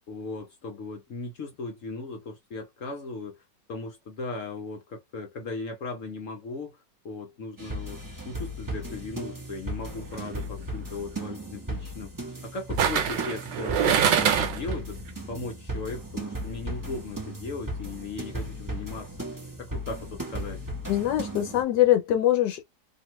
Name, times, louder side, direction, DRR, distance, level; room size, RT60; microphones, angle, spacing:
voice 1, 0.1-3.4 3.7-6.8 7.0-8.0 8.3-12.1 12.4-15.0 15.3-19.1 19.6-20.6, left 3 dB, 60° left, 0.9 m, -37 dB
sound 1, 7.6-21.6, right 1 dB, 20° right, 0.5 m, -36 dB
sound 2, 10.1-10.4 12.8-14.7 15.1-15.2, right 8 dB, 80° right, 1.4 m, -24 dB
voice 2, 20.9-22.6, left 13 dB, 75° left, 1.3 m, -23 dB
2.8 x 2.6 x 3.0 m
omnidirectional pair, 2.0 m